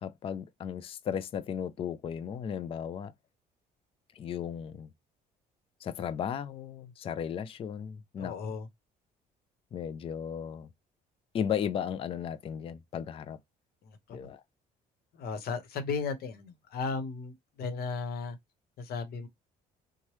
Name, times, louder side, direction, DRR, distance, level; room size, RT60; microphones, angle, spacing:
voice 1, 0.0-3.1 4.2-4.9 5.8-8.5 9.7-10.7 11.3-13.4 14.1-14.4, left 8 dB, 35° left, 0.3 m, -35 dB
voice 2, 8.2-8.7 13.8-14.2 15.1-18.4 18.8-19.3, left 4 dB, 65° left, 0.9 m, -35 dB
3.0 x 2.1 x 3.0 m
cardioid pair, 110°, 17 cm